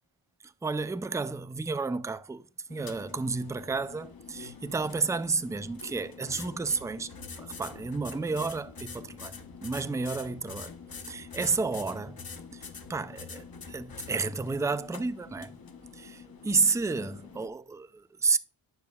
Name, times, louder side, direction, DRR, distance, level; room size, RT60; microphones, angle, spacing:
voice 1, 0.4-2.4 2.7-7.1 7.4-10.7 11.1-12.2 12.5-15.5 15.9-18.4, right 4 dB, 5° right, 0.4 m, -31 dB
sound 1, 2.7-17.5, left 5 dB, 45° left, 1.0 m, -45 dB
9.4 x 6.9 x 2.3 m
wide cardioid pair, 65°, 49 cm